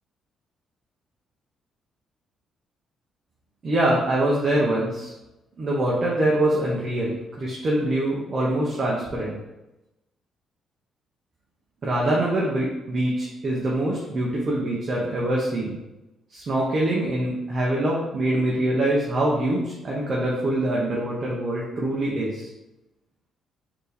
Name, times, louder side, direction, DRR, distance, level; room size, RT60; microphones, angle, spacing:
voice 1, 3.6-5.1 5.6-9.4 11.8-15.8 16.3-22.5, right 1 dB, 45° right, -4 dB, 0.8 m, -24 dB
4.2 x 2.9 x 3.4 m, 1.0 s
cardioid pair, 90°, 0 cm